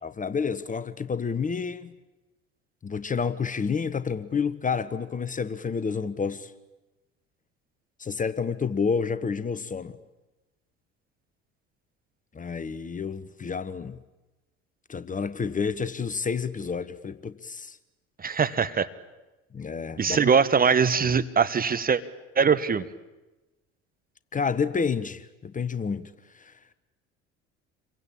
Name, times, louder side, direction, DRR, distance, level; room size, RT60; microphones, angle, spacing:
voice 1, 0.0-1.9 2.8-6.5 8.0-10.0 12.3-14.0 14.9-17.8 19.5-20.3 24.3-26.5, left 5 dB, 20° left, 1.2 m, -29 dB
voice 2, 18.2-18.9 20.0-22.0 22.4-22.8, right 6 dB, 25° right, 1.3 m, -22 dB
28.0 x 23.5 x 8.7 m
figure-of-eight pair, 65°, 38 cm